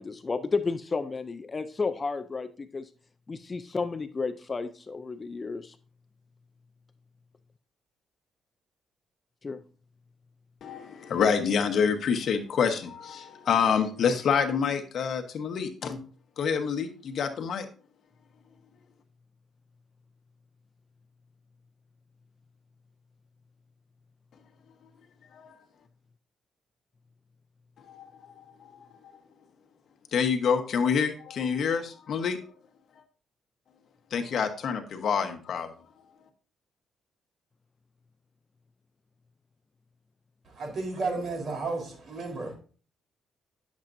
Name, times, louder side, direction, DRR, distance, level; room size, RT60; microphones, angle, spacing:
voice 1, 0.0-2.9 3.3-5.8 9.4-9.6, left 4 dB, 30° left, 0.5 m, -32 dB
voice 2, 10.6-16.0 16.4-17.7 25.3-25.6 27.9-28.8 30.1-32.4 34.1-35.7, left 6 dB, 60° left, 1.1 m, -27 dB
voice 3, 40.4-42.5, right 3 dB, 45° right, 3.8 m, -33 dB
10.0 x 7.3 x 2.6 m
cardioid pair, 90°, 0 cm